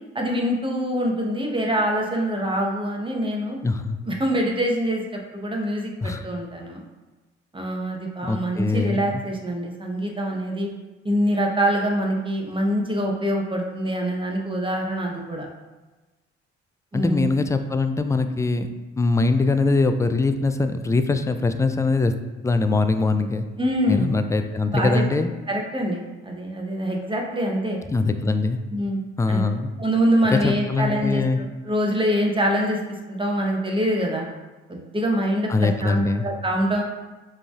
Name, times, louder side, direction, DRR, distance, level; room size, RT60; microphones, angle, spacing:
voice 1, 0.1-3.6 4.0-6.8 7.5-10.7 11.0-15.5 16.9-17.3 23.6-24.1 24.7-25.2 25.5-27.8 28.7-29.0 29.3-29.4 29.8-32.8 33.1-34.3 34.7-36.8, equal, 15° right, 0 dB, 1.0 m, -24 dB
voice 2, 3.6-4.0 6.0-6.2 8.2-9.2 16.9-18.7 19.0-22.1 22.4-23.5 23.9-25.3 27.9-28.6 29.2-29.7 30.3-31.4 35.5-36.2, left 3 dB, 10° left, 8 dB, 0.3 m, -22 dB
4.9 x 3.3 x 2.4 m, 1.2 s
hypercardioid pair, 50°, 29 cm